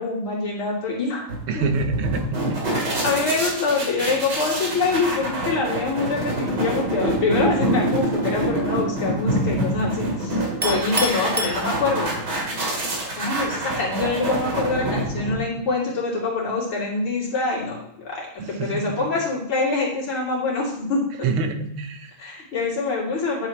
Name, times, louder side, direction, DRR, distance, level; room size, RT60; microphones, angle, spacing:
voice 1, 0.0-1.3 1.5-1.7 3.0-12.1 13.2-18.3 18.6-21.0 22.2-23.5, left 3 dB, 75° left, -5 dB, 3.5 m, -25 dB
sound 1, 1.3-15.6, right 1 dB, 55° right, 2.8 m, -26 dB
voice 2, 1.5-2.6 18.4-19.1 21.2-22.1, right 4 dB, 80° right, 7 dB, 1.8 m, -27 dB
Chink clink, 10.6-12.3, equal, 10° right, 0.6 m, -29 dB
10.0 x 7.5 x 3.1 m, 0.75 s
omnidirectional pair, 2.4 m